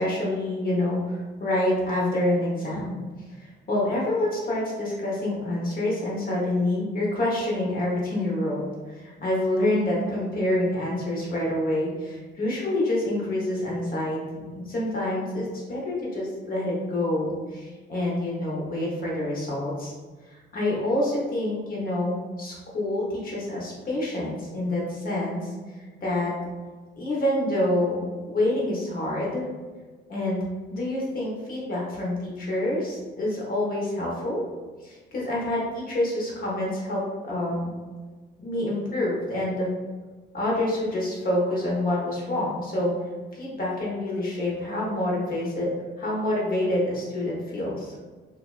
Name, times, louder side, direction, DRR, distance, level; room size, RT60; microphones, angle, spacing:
voice 1, 0.0-3.0 3.4-19.9 20.3-26.3 26.9-29.4 30.1-30.4 30.7-34.4 34.8-37.7 38.4-39.7 40.3-42.9 43.3-45.7 46.0-48.0, left 1 dB, 45° left, -5 dB, 1.0 m, -27 dB
2.7 x 2.1 x 2.4 m, 1.4 s
cardioid pair, 90°, 20 cm